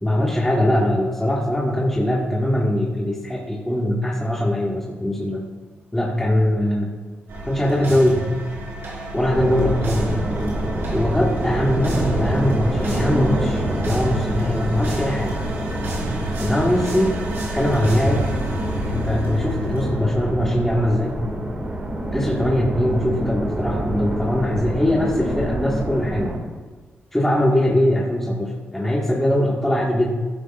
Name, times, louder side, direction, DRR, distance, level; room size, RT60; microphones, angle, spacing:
voice 1, 0.0-5.4 5.9-6.9 7.5-8.2 9.1-10.1 10.9-15.4 16.4-17.1 17.5-18.3 18.9-21.2 22.1-26.3 27.1-30.1, left 1 dB, 10° left, -4 dB, 1.7 m, -21 dB
sound 1, 7.3-22.0, right 1 dB, 85° right, 4.1 m, -31 dB
sound 2, 9.2-26.4, right 1 dB, 30° right, 2.1 m, -26 dB
15.0 x 13.0 x 2.5 m, 1.4 s
cardioid pair, 90°, 4 cm